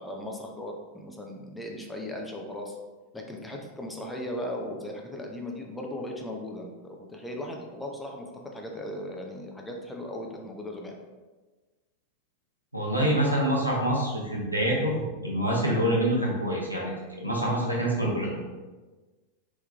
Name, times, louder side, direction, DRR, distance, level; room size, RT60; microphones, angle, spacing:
voice 1, 0.0-2.8 3.1-8.3 8.5-11.0, left 1 dB, 5° left, 1 dB, 0.5 m, -37 dB
voice 2, 12.7-16.9 17.2-18.4, right 1 dB, 90° right, -4 dB, 0.8 m, -26 dB
3.4 x 3.1 x 2.3 m, 1.3 s
figure-of-eight pair, 90°, 0 cm